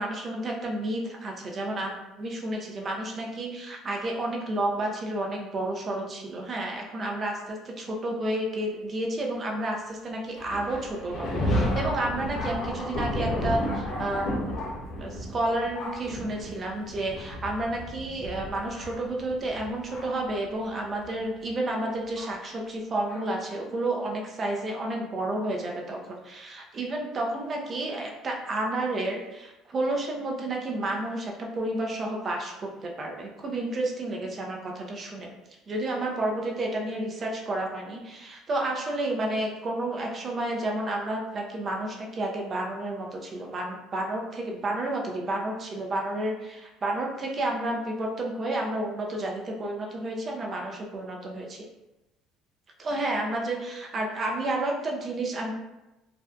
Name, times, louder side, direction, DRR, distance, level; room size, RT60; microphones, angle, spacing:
voice 1, 0.0-14.7 15.0-35.3 35.7-51.6 52.8-55.5, right 1 dB, 40° right, 0 dB, 0.5 m, -31 dB
Thunder, 10.4-20.3 21.0-21.1 22.2-22.3 23.1-23.2, left 1 dB, 60° left, 0.7 m, -32 dB
2.5 x 2.1 x 2.4 m, 0.98 s
supercardioid pair, 95°, 0 cm